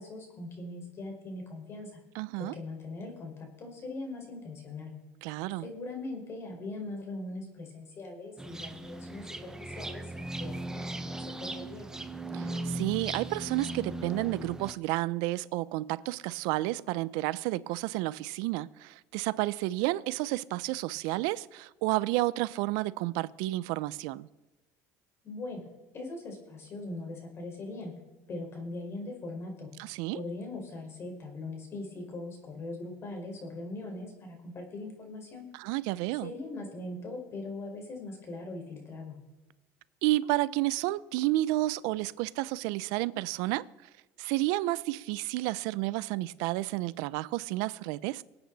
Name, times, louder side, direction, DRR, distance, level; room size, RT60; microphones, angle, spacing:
voice 1, 0.0-2.0 2.4-4.9 5.6-11.9 25.2-25.6 25.9-27.9 28.3-29.7 30.1-35.5 36.2-39.2, left 2 dB, 40° left, 4.9 m, -41 dB
voice 2, 2.1-2.5 5.2-5.7 12.3-24.3 29.8-30.2 35.5-36.3 40.0-43.7 44.2-48.2, right 18 dB, 80° right, 0.5 m, -31 dB
sound 1, 8.4-14.7, right 2 dB, 10° right, 1.0 m, -38 dB
24.5 x 8.8 x 4.1 m
supercardioid pair, 110°, 7 cm